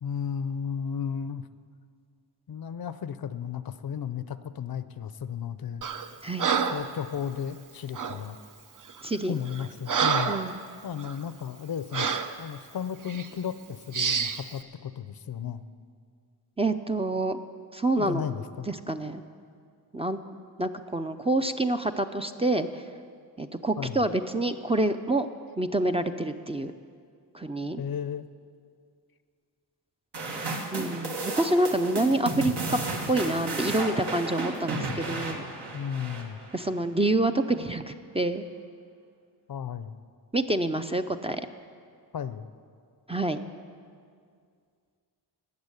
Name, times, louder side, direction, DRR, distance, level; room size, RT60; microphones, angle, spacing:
voice 1, 0.0-1.5 2.5-5.8 6.6-8.4 9.3-10.3 10.8-15.6 18.0-18.7 23.8-24.0 27.8-28.3 35.7-36.4 39.5-40.0 42.1-42.5, left 8 dB, 60° left, 13 dB, 0.6 m, -34 dB
Breathing, 5.8-6.1 6.4-6.9 7.9-8.2 8.9-9.1 9.5-10.5 11.0-11.1 11.9-12.3 13.1-13.3 13.9-14.4, right 6 dB, 50° right, 0.8 m, -28 dB
voice 2, 9.0-9.3 10.3-10.6 16.6-17.4 17.7-18.2 18.7-19.2 19.9-20.2 20.6-22.8 23.4-25.3 25.6-26.7 27.3-27.8 30.7-32.8 33.1-35.5 36.5-38.5 40.3-41.4 43.1-43.4, right 2 dB, 15° right, 7 dB, 0.5 m, -27 dB
sound 1, 30.1-36.7, right 2 dB, 75° right, 1.9 m, -33 dB
13.5 x 8.5 x 9.7 m, 2.2 s
wide cardioid pair, 110°, 42 cm